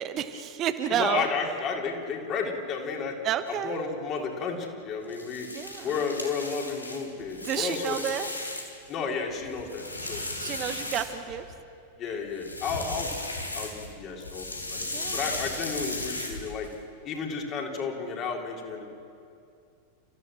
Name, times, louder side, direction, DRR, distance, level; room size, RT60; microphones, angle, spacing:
voice 1, 0.0-1.3 3.2-3.8 5.5-6.0 7.4-8.3 10.4-11.4 14.9-15.2, right 10 dB, 35° right, 9 dB, 1.1 m, -30 dB
voice 2, 0.9-3.2 3.6-5.5 5.8-8.0 8.9-10.6 12.0-16.7 17.0-18.9, left 5 dB, 35° left, 1 dB, 3.8 m, -32 dB
sound 1, 5.0-8.9 9.3-11.5 12.3-13.9 14.2-16.7, left 2 dB, 80° left, 3.3 m, -36 dB
30.0 x 15.5 x 7.7 m, 2.6 s
figure-of-eight pair, 90°, 0 cm